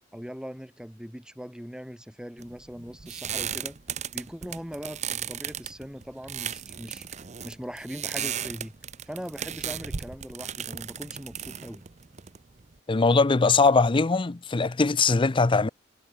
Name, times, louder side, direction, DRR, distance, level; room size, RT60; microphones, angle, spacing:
voice 1, 0.1-3.8 4.1-7.1 7.4-8.7 9.1-11.8, equal, 5° right, 7.4 m, -40 dB
sound 1, 2.4-12.8, right 8 dB, 35° right, 0.7 m, -36 dB
voice 2, 12.9-15.7, left 4 dB, 25° left, 0.5 m, -21 dB
head